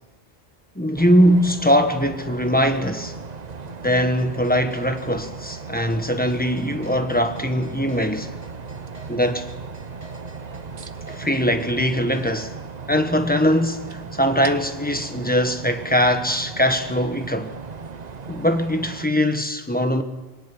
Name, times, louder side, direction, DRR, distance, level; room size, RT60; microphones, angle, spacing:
voice 1, 0.7-3.2 3.8-8.3 9.1-9.5 11.1-12.5 12.9-17.5 18.3-20.0, equal, 10° left, 1.4 m, -21 dB
sound 1, 1.0-19.1, right 5 dB, 45° right, 1.0 m, -37 dB
sound 2, 4.2-12.5, right 2 dB, 15° right, 4.3 m, -47 dB
24.5 x 18.5 x 6.2 m
omnidirectional pair, 1.0 m